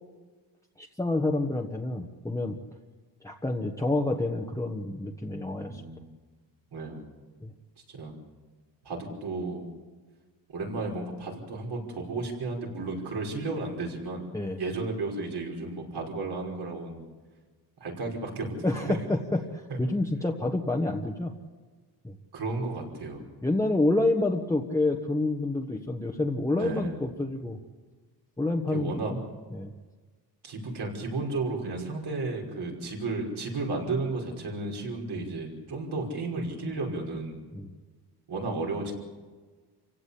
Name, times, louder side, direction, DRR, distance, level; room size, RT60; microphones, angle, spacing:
voice 1, 0.8-2.6 3.2-5.8 7.4-7.5 14.3-14.6 18.6-21.3 22.0-22.2 23.4-27.6 28.4-29.2 29.5-29.7 35.2-35.3 37.5-37.7, left 2 dB, 5° left, 1 dB, 1.3 m, -28 dB
voice 2, 5.5-6.1 6.7-7.0 7.9-8.2 8.8-9.6 10.5-14.3 14.6-17.0 17.8-19.0 22.3-23.2 26.6-27.0 28.7-29.1 30.4-37.4 38.3-38.9, right 3 dB, 65° right, 1 dB, 5.5 m, -33 dB
28.0 x 16.5 x 8.5 m, 1.4 s
wide cardioid pair, 140°, 43 cm